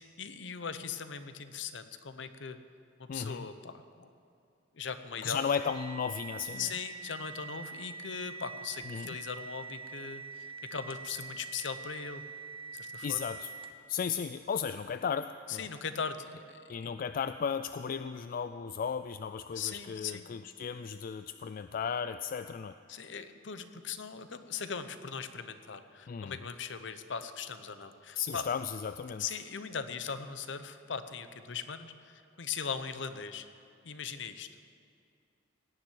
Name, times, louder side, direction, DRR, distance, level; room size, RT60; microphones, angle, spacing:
voice 1, 0.0-2.6 3.0-4.1 4.7-5.4 6.6-12.2 12.7-13.3 15.5-16.9 19.5-20.3 22.9-28.5 29.2-33.5 33.8-34.5, left 6 dB, 70° left, 10 dB, 0.8 m, -39 dB
voice 2, 3.1-3.5 5.2-6.7 8.9-9.2 13.0-13.5 13.9-15.7 16.7-22.7 26.1-26.4 28.2-29.2, left 6 dB, 45° left, 11 dB, 0.3 m, -35 dB
sound 1, 5.4-13.9, right 4 dB, 30° right, 0.6 m, -45 dB
17.5 x 7.3 x 9.2 m, 2.5 s
head